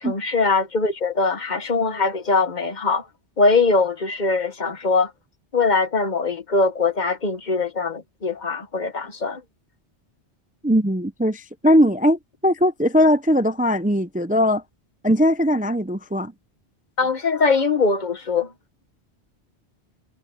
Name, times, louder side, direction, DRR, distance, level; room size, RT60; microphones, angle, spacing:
voice 1, 0.0-3.0 3.4-5.1 5.5-9.4 17.0-18.5, left 4 dB, 40° left, 1.5 m, -21 dB
voice 2, 10.6-14.6 15.0-16.3, equal, 15° right, 0.3 m, -19 dB
omnidirectional pair, 1.2 m